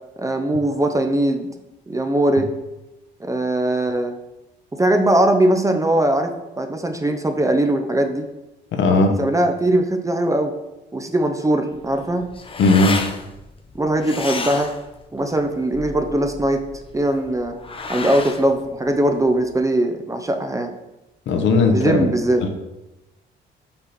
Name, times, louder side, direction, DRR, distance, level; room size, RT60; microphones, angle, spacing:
voice 1, 0.2-1.5 1.9-2.5 3.2-4.2 4.7-8.3 9.2-10.5 10.9-12.2 13.8-14.7 15.1-16.6 16.9-17.6 17.9-20.7 21.7-22.4, right 1 dB, 15° right, 6 dB, 0.6 m, -20 dB
voice 2, 8.7-9.2 12.6-13.0 21.3-22.1, left 3 dB, 70° left, 5 dB, 0.9 m, -16 dB
sound 1, 11.7-19.6, left 4 dB, 25° left, 0.6 m, -32 dB
5.4 x 4.3 x 4.1 m, 0.98 s
cardioid pair, 90°, 20 cm